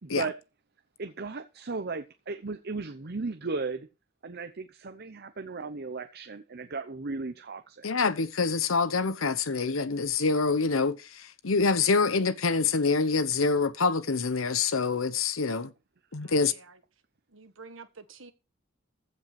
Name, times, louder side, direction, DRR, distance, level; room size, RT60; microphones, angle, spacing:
voice 1, 0.0-0.4 1.0-3.9 4.2-7.9, right 4 dB, 50° right, 0.8 m, -36 dB
voice 2, 7.8-15.7 16.1-16.5, left 4 dB, 75° left, 1.0 m, -26 dB
voice 3, 16.2-16.8 17.3-18.3, right 4 dB, 70° right, 1.6 m, -49 dB
15.0 x 5.3 x 5.9 m
head